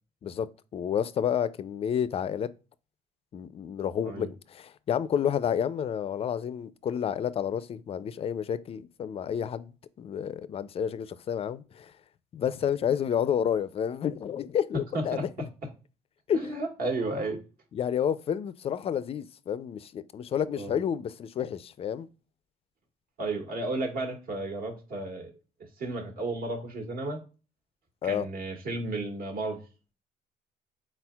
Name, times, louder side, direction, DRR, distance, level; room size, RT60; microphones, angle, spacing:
voice 1, 0.2-2.5 3.3-9.7 10.0-11.9 12.3-15.5 16.3-16.6 17.7-22.1 28.0-28.3, left 8 dB, 35° left, 0.3 m, -30 dB
voice 2, 16.3-17.4 20.6-20.7 23.2-25.3 25.8-27.2 28.0-29.6, right 2 dB, 60° right, 1.4 m, -33 dB
4.3 x 4.0 x 2.2 m
cardioid pair, 110°, 17 cm